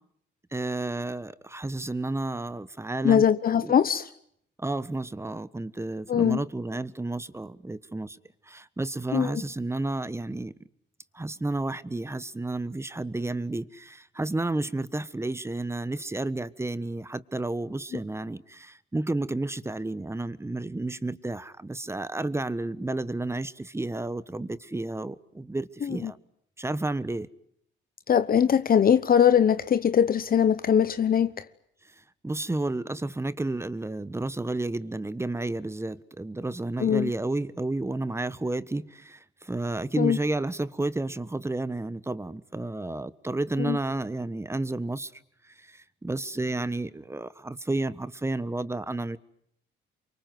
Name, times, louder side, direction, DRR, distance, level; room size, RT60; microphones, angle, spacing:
voice 1, 0.5-3.3 3.5-3.7 4.6-8.2 8.5-10.5 11.1-26.2 26.6-27.3 32.2-45.1 45.7-49.2, right 2 dB, 15° right, 1.3 m, -31 dB
voice 2, 3.0-4.1 6.1-6.4 9.1-9.4 25.8-26.1 28.1-31.4 36.8-37.1 40.0-40.2 43.6-43.8, left 8 dB, 45° left, 1.0 m, -21 dB
28.5 x 24.5 x 7.9 m
cardioid pair, 90°, 20 cm